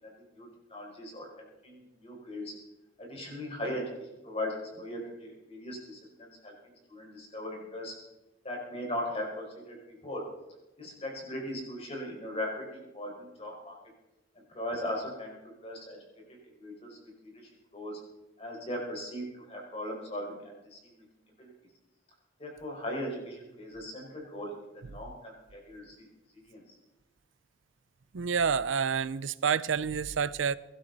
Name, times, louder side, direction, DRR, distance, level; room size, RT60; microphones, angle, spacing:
voice 1, 0.0-2.5 3.0-3.9 4.2-7.9 8.4-10.2 10.8-13.7 14.5-16.0 16.6-17.0 17.3-18.0 18.4-21.0 21.4-21.5 22.4-26.1 26.4-26.8, left 1 dB, 30° left, 5.1 m, -39 dB
voice 2, 28.1-30.6, right 6 dB, 80° right, 0.6 m, -28 dB
23.5 x 12.0 x 4.1 m
head